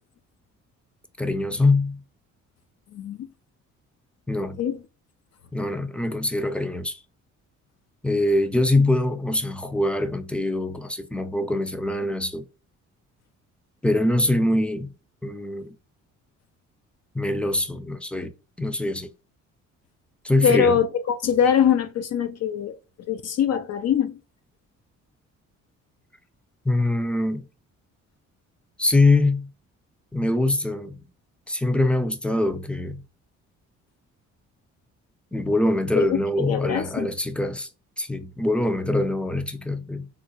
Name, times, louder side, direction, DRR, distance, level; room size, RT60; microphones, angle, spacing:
voice 1, 1.2-2.0 4.3-4.6 5.5-7.0 8.0-12.5 13.8-14.9 15.2-15.8 17.1-18.3 18.6-19.1 20.2-20.8 26.6-27.5 28.8-29.5 30.1-31.1 31.5-33.0 35.3-37.7 38.0-40.1, left 2 dB, 5° left, 0.5 m, -23 dB
voice 2, 2.9-3.3 4.6-4.8 20.4-22.8 23.1-24.2 36.0-37.1, left 8 dB, 60° left, 0.5 m, -23 dB
3.7 x 2.2 x 2.9 m
cardioid pair, 90°, 30 cm